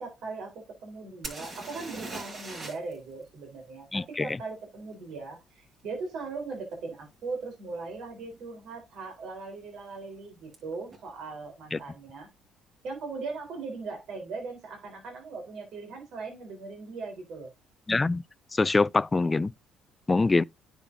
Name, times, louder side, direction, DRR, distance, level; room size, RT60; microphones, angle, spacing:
voice 1, 0.0-12.3 12.8-17.5, right 4 dB, 65° right, 3.9 m, -39 dB
sound 1, 1.2-3.0 3.2-3.3 6.7-6.8 7.5-7.7 7.9-8.5 10.5-10.6 10.9-11.0, right 2 dB, 40° right, 5.8 m, -40 dB
voice 2, 3.9-4.3 11.7-11.8 17.9-18.2 18.5-19.5 20.1-20.4, left 3 dB, 20° left, 0.4 m, -24 dB
10.0 x 7.1 x 2.7 m
cardioid pair, 100°, 0 cm